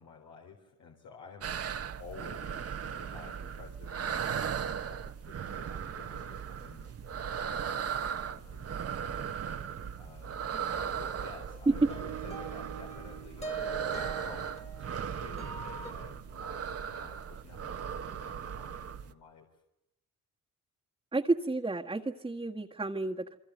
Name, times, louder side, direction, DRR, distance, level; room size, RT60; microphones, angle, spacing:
voice 1, 0.0-9.7 10.0-13.7 14.2-19.5, left 6 dB, 75° left, 1 dB, 4.0 m, -53 dB
sound 1, 1.4-19.1, right 7 dB, 50° right, 1.4 m, -37 dB
sound 2, 7.1-7.5 8.4-8.8 9.6-9.7 10.2-10.3 10.7-11.3 11.6-15.9, right 4 dB, 20° left, 2.7 m, -42 dB
voice 2, 21.1-23.4, right 2 dB, 15° right, -3 dB, 1.8 m, -30 dB
29.0 x 23.0 x 8.0 m, 0.85 s
cardioid pair, 90°, 30 cm